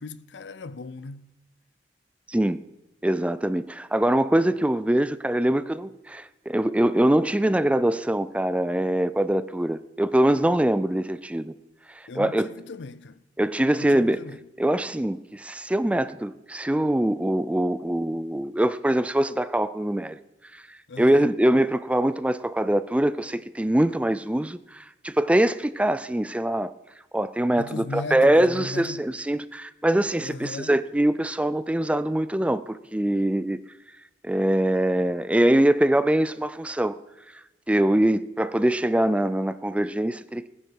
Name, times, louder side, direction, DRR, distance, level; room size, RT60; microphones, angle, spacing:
voice 1, 0.0-1.3 12.1-13.2 13.7-14.4 20.9-21.3 27.6-29.0 30.2-30.8, left 3 dB, 80° left, 0.6 m, -37 dB
voice 2, 2.3-2.6 3.0-11.5 11.9-12.5 13.4-14.2 14.6-20.2 20.5-26.7 27.1-33.6 34.2-37.0 37.7-40.5, right 1 dB, 5° right, 0.4 m, -23 dB
19.5 x 9.9 x 4.6 m
head